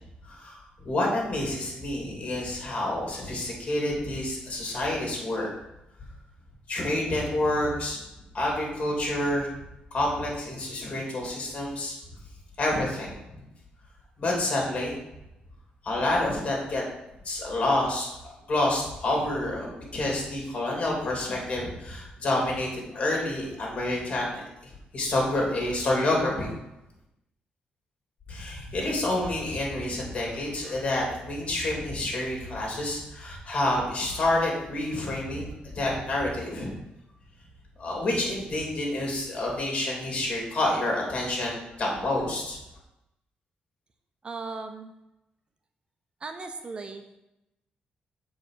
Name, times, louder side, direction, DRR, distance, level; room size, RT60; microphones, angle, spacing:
voice 1, 0.2-5.5 6.7-8.0 8.3-9.5 9.9-11.9 12.6-13.1 14.2-15.0 15.8-16.8 17.2-18.1 18.5-26.5 28.3-36.7 37.8-42.6, left 1 dB, 40° left, -2 dB, 3.1 m, -28 dB
voice 2, 44.2-44.9 46.2-47.0, right 4 dB, 30° right, 6 dB, 0.6 m, -37 dB
7.4 x 4.8 x 6.6 m, 0.91 s
cardioid pair, 125°, 3 cm